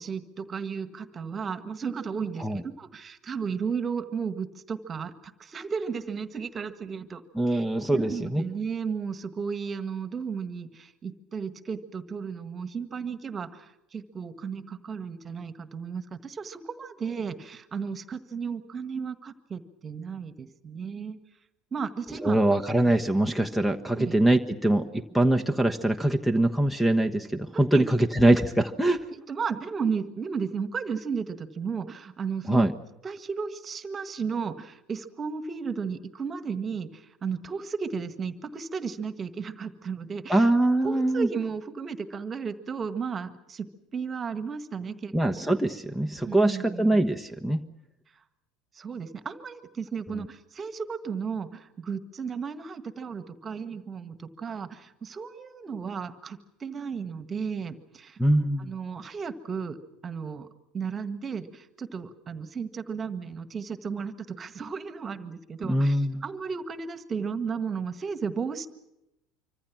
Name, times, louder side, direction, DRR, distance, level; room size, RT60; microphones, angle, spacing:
voice 1, 0.0-7.2 7.5-7.6 7.9-21.2 21.7-22.4 22.8-22.9 24.0-24.2 27.7-27.9 29.1-32.7 33.0-40.5 40.8-43.7 43.9-45.1 46.2-47.1 48.8-58.2 58.6-59.8 60.0-60.5 60.7-68.7, right 6 dB, 30° right, 12 dB, 1.7 m, -34 dB
voice 2, 7.4-8.4 22.2-27.8 28.2-29.0 32.5-32.7 40.3-41.3 45.1-47.6 58.2-58.7 65.7-66.2, right 1 dB, 5° left, 11 dB, 1.3 m, -23 dB
25.5 x 25.0 x 6.1 m, 0.88 s
hypercardioid pair, 70°, 0 cm